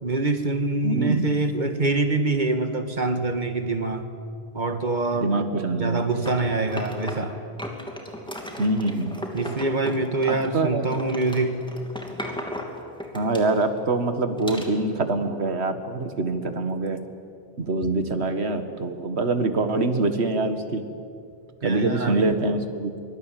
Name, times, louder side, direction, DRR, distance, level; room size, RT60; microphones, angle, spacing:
voice 1, 0.0-4.1 4.5-5.4 5.8-7.4 9.3-11.6 21.6-22.3, right 3 dB, 45° right, 7 dB, 1.8 m, -25 dB
voice 2, 0.8-1.3 5.1-6.3 8.6-9.1 10.3-10.9 13.1-17.0 17.6-20.8 21.6-22.9, right 2 dB, 80° right, 8 dB, 2.0 m, -25 dB
sound 1, 6.2-7.3 7.6-10.6 10.9-13.8 14.4-14.7, equal, 5° left, 2.8 m, -36 dB
24.5 x 21.0 x 9.2 m, 2.4 s
omnidirectional pair, 1.1 m